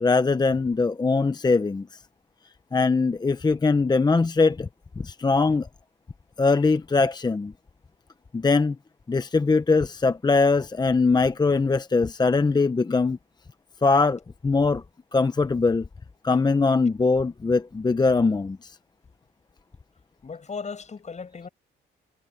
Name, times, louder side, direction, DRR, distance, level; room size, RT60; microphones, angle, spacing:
voice 1, 0.0-1.9 2.7-4.7 5.0-5.7 6.4-7.5 8.3-8.8 9.1-13.2 13.8-14.8 15.1-15.9 16.2-18.7, left 4 dB, 20° left, 0.8 m, -21 dB
voice 2, 20.2-21.5, left 5 dB, 35° left, 7.0 m, -36 dB
cardioid pair, 90°, 20 cm